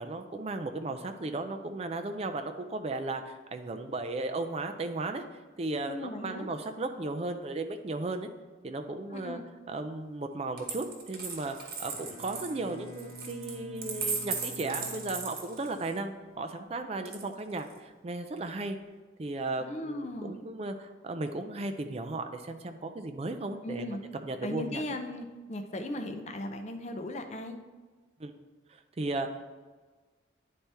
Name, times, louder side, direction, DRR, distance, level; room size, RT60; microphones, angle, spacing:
voice 1, 0.0-5.2 5.6-8.3 8.6-9.4 9.7-18.8 19.2-23.9 24.2-24.8 28.2-28.3 28.7-29.6, right 2 dB, 30° right, 7 dB, 0.4 m, -35 dB
voice 2, 5.9-6.5 9.1-9.4 19.6-20.4 23.6-24.0 24.4-27.6, left 1 dB, 35° left, 6 dB, 0.5 m, -37 dB
Coin (dropping), 10.6-16.0 17.0-17.8, right 5 dB, 50° right, 1.1 m, -37 dB
Bowed string instrument, 11.7-16.1, equal, 80° left, 1.3 m, -48 dB
10.0 x 4.2 x 3.4 m, 1.3 s
head